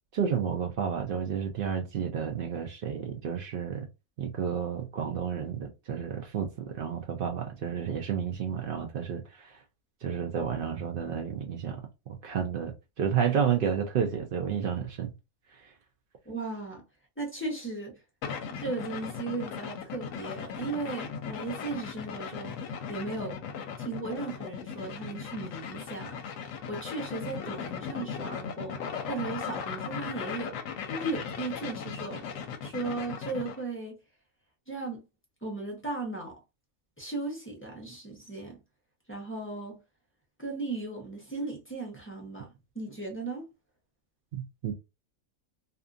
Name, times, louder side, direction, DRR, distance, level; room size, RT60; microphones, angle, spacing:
voice 1, 0.1-3.9 4.2-9.6 10.0-11.8 12.1-15.1 15.5-15.7 44.3-44.7, right 7 dB, 90° right, 0.4 m, -31 dB
voice 2, 16.3-16.8 17.2-17.9 18.6-23.4 23.8-26.2 26.7-28.8 29.1-30.6 30.8-32.3 32.6-34.0 34.7-35.0 35.4-36.4 37.0-38.6 39.1-39.8 40.4-43.5, right 3 dB, 15° left, 0.5 m, -36 dB
sound 1, 18.2-33.6, left 6 dB, 70° left, 0.9 m, -37 dB
2.6 x 2.4 x 2.4 m
omnidirectional pair, 1.5 m